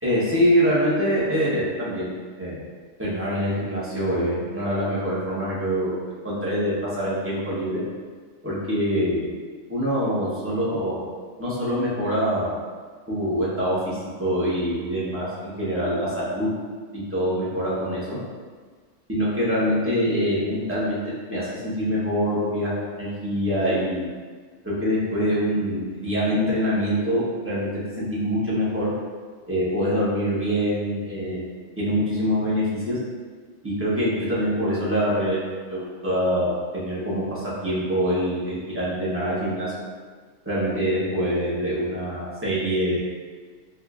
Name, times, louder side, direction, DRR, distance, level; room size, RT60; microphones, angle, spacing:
voice 1, 0.0-2.1 2.4-2.6 3.0-7.8 8.4-9.3 9.7-11.1 11.4-12.5 13.1-16.5 16.9-18.2 19.1-22.7 23.0-24.1 24.6-28.9 29.5-31.5 31.8-33.0 33.6-39.7 40.4-43.0, equal, 10° right, -9 dB, 0.8 m, -24 dB
4.7 x 2.4 x 2.4 m, 1.5 s
omnidirectional pair, 1.3 m